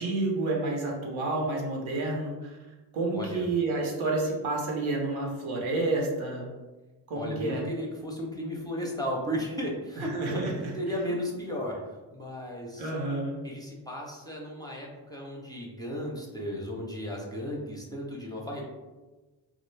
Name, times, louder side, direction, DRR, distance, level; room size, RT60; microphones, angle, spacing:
voice 1, 0.0-2.6 2.9-6.5 7.1-7.7 10.0-10.7 12.8-13.4, right 2 dB, 70° right, -1 dB, 0.8 m, -29 dB
voice 2, 3.1-3.5 7.1-10.4 10.8-11.8 12.1-12.9 13.4-18.6, equal, 10° left, -3 dB, 0.6 m, -35 dB
2.4 x 2.0 x 3.1 m, 1.2 s
supercardioid pair, 50°, 49 cm